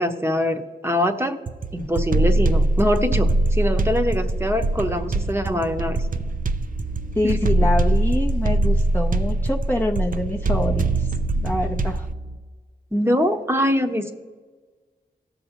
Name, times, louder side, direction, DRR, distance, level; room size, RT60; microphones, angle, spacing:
voice 1, 0.0-1.4 1.7-6.0 7.2-7.5 12.9-14.1, equal, 15° right, 5 dB, 0.9 m, -23 dB
sound 1, 1.5-12.1, right 2 dB, 45° right, 0.5 m, -22 dB
sound 2, 4.3-12.4, right 1 dB, 80° right, 1.4 m, -36 dB
voice 2, 7.1-11.1 11.4-12.1, left 1 dB, 10° left, 1 dB, 0.7 m, -25 dB
18.0 x 6.8 x 2.9 m, 1.4 s
cardioid pair, 50°, 19 cm